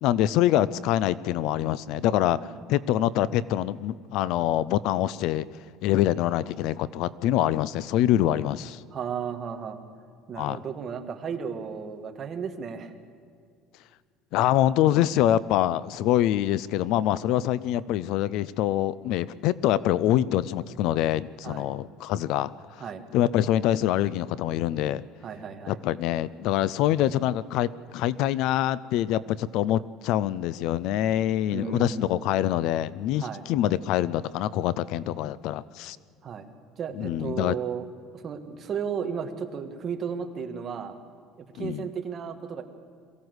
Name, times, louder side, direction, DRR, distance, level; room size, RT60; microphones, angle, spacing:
voice 1, 0.0-2.4 2.7-5.5 5.8-8.8 10.4-10.6 14.3-22.5 23.1-25.0 25.7-36.0 37.0-37.6 41.6-41.9, left 12 dB, 55° left, 19 dB, 0.5 m, -25 dB
voice 2, 2.3-2.7 8.9-9.8 10.3-12.9 21.4-21.7 22.8-23.0 25.2-25.8 31.5-32.1 33.2-33.4 36.2-36.5 36.8-37.8 38.1-41.0 41.4-42.6, right 7 dB, 25° right, 6 dB, 1.4 m, -34 dB
22.5 x 15.5 x 8.0 m, 2.2 s
cardioid pair, 180°, 0 cm